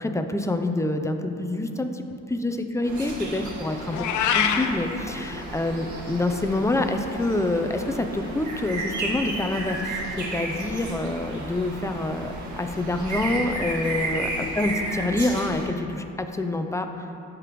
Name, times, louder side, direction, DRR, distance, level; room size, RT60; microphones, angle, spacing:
voice 1, 0.0-2.0 2.3-9.9 10.2-14.3 14.6-17.1, left 2 dB, 10° left, 6 dB, 0.6 m, -27 dB
sound 1, 2.8-15.7, right 2 dB, 75° right, 1.8 m, -33 dB
Meow, 3.9-4.7, left 8 dB, 75° left, 0.6 m, -23 dB
13.5 x 5.1 x 3.1 m, 2.9 s
cardioid pair, 90°, 30 cm